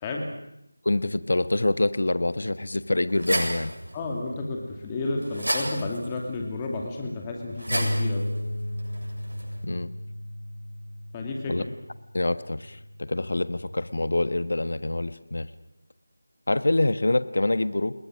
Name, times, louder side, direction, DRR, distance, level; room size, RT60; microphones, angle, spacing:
voice 1, 0.8-3.7 9.6-9.9 11.5-11.6 12.1-15.5 16.5-17.9, left 2 dB, 60° left, 13 dB, 1.2 m, -25 dB
sound 1, 2.8-9.6, right 1 dB, 75° right, 7.6 m, -34 dB
voice 2, 3.9-8.2 11.1-11.5, left 3 dB, 15° left, 1 dB, 2.5 m, -31 dB
sound 2, 7.7-13.9, left 1 dB, 80° left, 7.0 m, -34 dB
29.5 x 21.0 x 6.3 m, 0.82 s
figure-of-eight pair, 165°, 0 cm